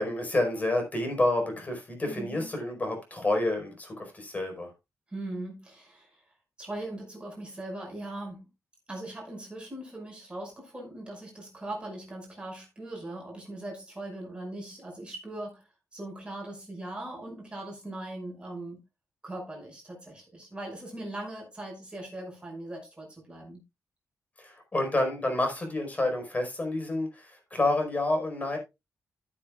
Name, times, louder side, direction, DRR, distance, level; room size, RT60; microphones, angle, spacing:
voice 1, 0.0-4.7 24.4-28.6, left 2 dB, 25° left, 4.9 m, -29 dB
voice 2, 2.1-2.5 5.1-6.2 6.6-8.4 8.9-15.6 15.9-18.8 19.2-23.6, right 1 dB, 15° right, 5.7 m, -40 dB
14.0 x 8.5 x 2.4 m
wide cardioid pair, 130°, 6 cm